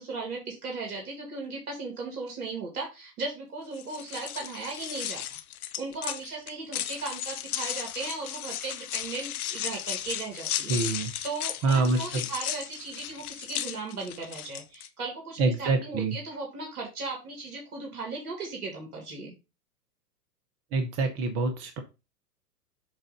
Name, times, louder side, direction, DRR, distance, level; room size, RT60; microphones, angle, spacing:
voice 1, 0.0-5.2 5.8-19.3, right 3 dB, 65° right, 1 dB, 2.3 m, -37 dB
sound 1, 3.7-14.9, left 12 dB, 60° left, 0.7 m, -35 dB
voice 2, 10.7-11.1 11.6-12.2 15.4-16.2 20.7-21.8, right 3 dB, 30° right, 7 dB, 0.9 m, -26 dB
7.3 x 2.5 x 5.2 m, 0.28 s
hypercardioid pair, 110°, 48 cm